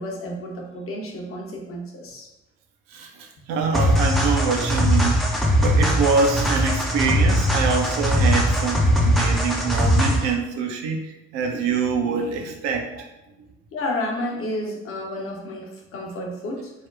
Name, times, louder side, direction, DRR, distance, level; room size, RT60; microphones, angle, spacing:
voice 1, 0.0-2.3 13.7-16.7, left 1 dB, 40° left, 0 dB, 0.8 m, -31 dB
voice 2, 2.9-5.2 5.6-13.1, right 5 dB, 60° right, 2 dB, 0.6 m, -25 dB
sound 1, 3.7-10.3, equal, ahead, 0.4 m, -20 dB
3.5 x 2.2 x 2.3 m, 0.99 s
figure-of-eight pair, 45°, 35 cm